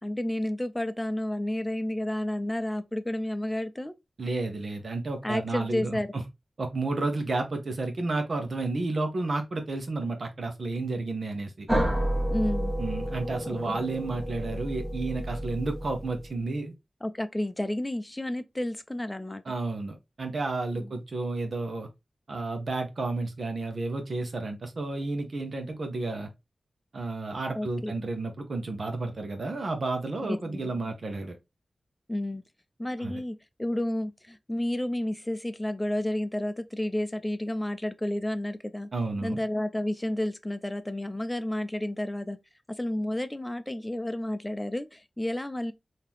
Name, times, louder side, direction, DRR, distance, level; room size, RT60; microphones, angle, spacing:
voice 1, 0.0-3.9 5.2-6.1 12.3-12.7 13.5-13.8 17.0-19.5 20.7-20.9 27.6-27.9 30.2-30.8 32.1-32.4 32.8-38.9 39.2-42.4 42.7-45.7, left 1 dB, 15° left, 0.5 m, -31 dB
voice 2, 4.2-6.2 6.6-11.7 12.8-16.7 19.4-21.9 22.3-26.3 26.9-31.4 33.0-33.2 38.9-39.4, right 3 dB, 70° right, 1.0 m, -31 dB
sound 1, 11.7-16.4, equal, 20° right, 1.2 m, -30 dB
3.7 x 2.8 x 3.0 m
cardioid pair, 50°, 0 cm